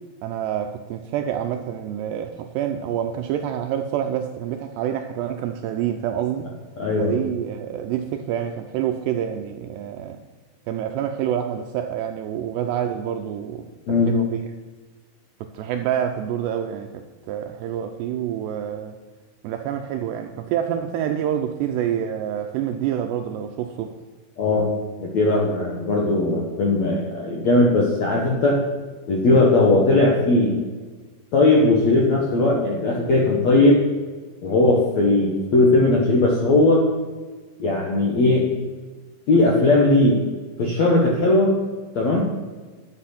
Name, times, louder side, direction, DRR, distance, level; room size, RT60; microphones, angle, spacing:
voice 1, 0.2-6.5 7.0-10.2 10.7-13.7 14.1-14.3 15.4-17.0 17.3-19.0 19.4-24.0, right 9 dB, 80° right, 2.5 m, -27 dB
voice 2, 6.8-7.1 13.9-14.1 24.4-24.7 25.0-28.6 29.1-30.6 31.3-33.8 34.4-36.8 37.6-38.5 39.3-40.2 40.6-41.5 41.9-42.2, left 2 dB, 65° left, 1.7 m, -18 dB
11.5 x 8.6 x 5.8 m
omnidirectional pair, 5.5 m